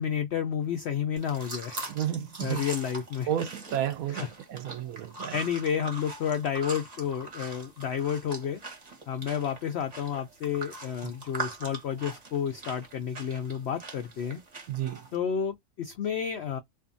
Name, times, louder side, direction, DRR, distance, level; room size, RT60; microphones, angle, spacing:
voice 1, 0.0-1.8 2.4-3.3 4.1-4.3 5.3-8.6 9.1-14.4 15.1-16.6, left 8 dB, 80° left, 0.6 m, -31 dB
sound 1, 1.2-15.2, right 3 dB, 35° right, 0.8 m, -42 dB
voice 2, 1.9-2.6 3.3-5.4 14.7-15.0, right 10 dB, 70° right, 0.9 m, -32 dB
2.5 x 2.5 x 2.5 m
omnidirectional pair, 1.7 m